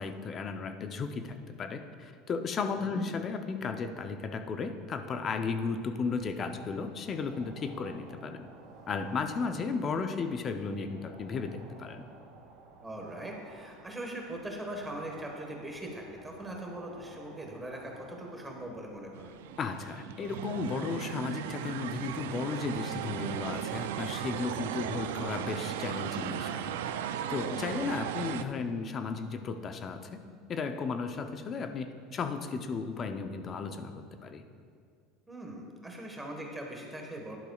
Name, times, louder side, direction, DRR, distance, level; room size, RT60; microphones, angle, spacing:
voice 1, 0.0-8.5 8.9-12.1 19.6-26.7 27.3-30.2 30.5-34.4, left 5 dB, 35° left, 7 dB, 0.6 m, -35 dB
sound 1, 6.8-19.8, right 3 dB, 65° right, 2.1 m, -54 dB
voice 2, 12.8-19.3 27.4-27.9 35.3-37.4, right 1 dB, 10° right, 0 dB, 1.4 m, -41 dB
sound 2, 19.1-28.4, right 10 dB, 85° right, 0.4 m, -36 dB
11.5 x 11.0 x 2.4 m, 2.2 s
supercardioid pair, 115°, 0 cm